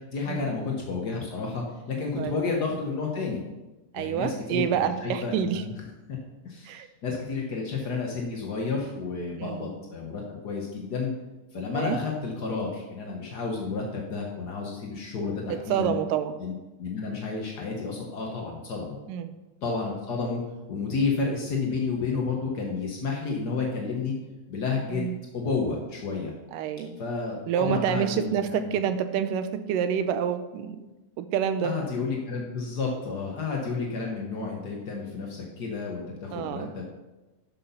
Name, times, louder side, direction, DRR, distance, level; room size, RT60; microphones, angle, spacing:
voice 1, 0.1-3.4 3.9-5.7 6.4-11.1 11.5-15.9 16.4-19.0 19.6-20.4 20.7-24.1 24.5-25.0 25.3-26.3 27.0-28.8 31.6-36.8, left 4 dB, 70° left, -1 dB, 0.9 m, -31 dB
voice 2, 3.9-5.6 6.7-6.9 9.4-9.7 11.7-12.0 15.5-16.3 19.1-19.3 24.9-25.2 26.5-27.0 27.5-30.8 31.2-31.8 36.3-36.7, right 9 dB, 85° right, 10 dB, 2.3 m, -28 dB
12.0 x 6.2 x 5.6 m, 1.1 s
omnidirectional pair, 3.8 m